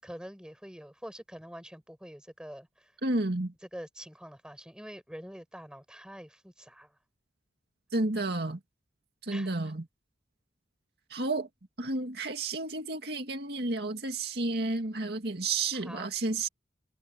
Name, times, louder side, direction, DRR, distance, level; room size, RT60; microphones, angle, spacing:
voice 1, 0.0-2.9 3.7-6.9 9.3-9.6 15.7-16.1, equal, 5° right, 7.6 m, -45 dB
voice 2, 3.0-3.5 7.9-8.6 9.2-9.9 11.1-11.5 11.8-16.5, right 2 dB, 65° right, 2.2 m, -31 dB
head